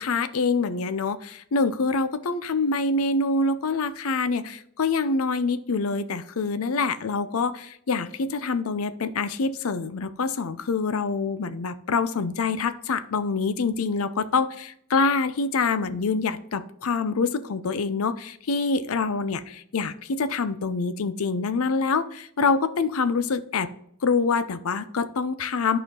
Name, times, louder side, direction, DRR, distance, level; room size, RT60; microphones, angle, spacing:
voice 1, 0.0-23.7 24.0-25.8, left 4 dB, 70° left, 12 dB, 0.6 m, -26 dB
11.5 x 4.4 x 3.7 m, 0.71 s
head